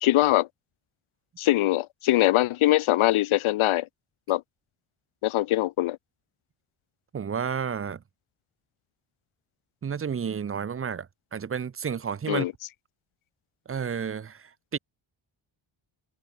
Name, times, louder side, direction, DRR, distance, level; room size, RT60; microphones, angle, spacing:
voice 1, 0.0-0.5 1.4-3.9 4.3-4.4 5.2-6.0 12.3-12.5, left 15 dB, 75° left, 0.6 m, -22 dB
voice 2, 7.1-8.0 9.8-12.5 13.7-14.8, right 7 dB, 30° right, 0.5 m, -31 dB
wide cardioid pair, 125°, 49 cm